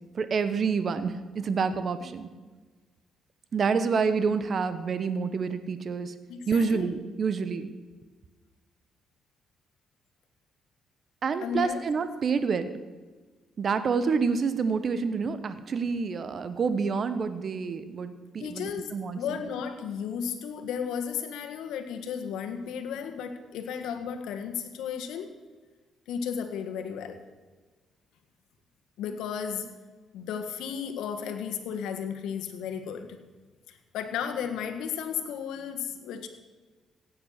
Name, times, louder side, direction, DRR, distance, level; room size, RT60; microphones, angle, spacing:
voice 1, 0.0-2.3 3.5-6.1 6.5-7.7 11.2-12.8 13.6-19.4, right 5 dB, 50° right, 11 dB, 1.1 m, -28 dB
voice 2, 6.3-6.8 11.4-11.8 18.4-25.3 26.1-27.2 29.0-29.7 30.1-33.3 33.7-36.3, left 7 dB, 90° left, 6 dB, 1.6 m, -34 dB
16.0 x 9.5 x 6.6 m, 1.3 s
cardioid pair, 90°, 0 cm